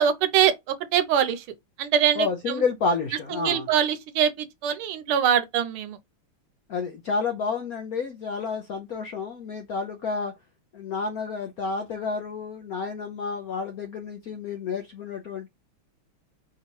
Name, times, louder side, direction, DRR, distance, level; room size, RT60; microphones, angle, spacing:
voice 1, 0.0-1.4 1.8-2.6 3.4-6.0, right 9 dB, 80° right, 1.5 m, -23 dB
voice 2, 2.2-3.7 6.7-10.3 10.7-15.5, left 4 dB, 70° left, 0.8 m, -30 dB
4.7 x 2.9 x 2.9 m
omnidirectional pair, 2.4 m